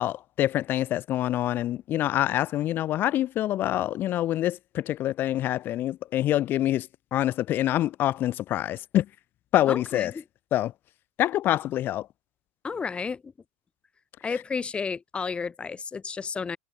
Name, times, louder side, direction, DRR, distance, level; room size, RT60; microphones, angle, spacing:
voice 1, 0.0-9.1 9.5-10.1 10.5-10.7 11.2-12.1, left 13 dB, 40° left, 0.8 m, -26 dB
voice 2, 9.7-10.2 12.6-13.3 14.2-16.6, left 5 dB, 20° left, 1.7 m, -32 dB
hypercardioid pair, 85°, 6 cm